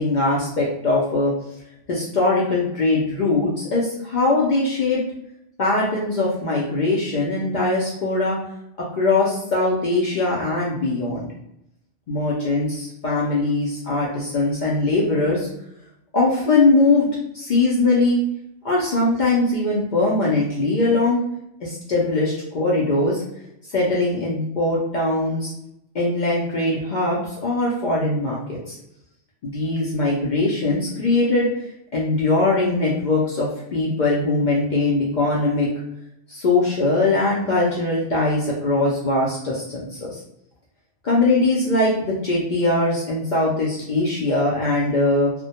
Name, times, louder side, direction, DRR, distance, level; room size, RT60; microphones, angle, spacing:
voice 1, 0.0-1.3 1.9-5.0 5.6-8.4 8.8-11.3 12.1-15.5 16.1-17.1 17.3-18.2 18.6-21.2 21.6-23.2 23.7-25.5 25.9-28.8 29.4-31.5 31.9-35.7 36.3-40.2 41.0-45.3, left 2 dB, 60° left, -5 dB, 0.5 m, -21 dB
2.1 x 2.1 x 2.7 m, 0.82 s
omnidirectional pair, 1.2 m